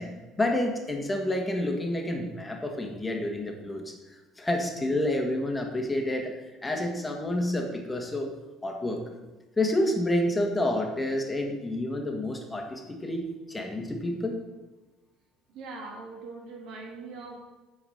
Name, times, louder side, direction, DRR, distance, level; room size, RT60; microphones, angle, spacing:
voice 1, 0.0-8.3 8.6-9.0 9.6-14.4, left 1 dB, 15° left, 3 dB, 1.7 m, -29 dB
voice 2, 15.5-17.4, right 3 dB, 65° right, 2 dB, 2.0 m, -41 dB
8.5 x 5.0 x 6.6 m, 1.2 s
hypercardioid pair, 70°, 0 cm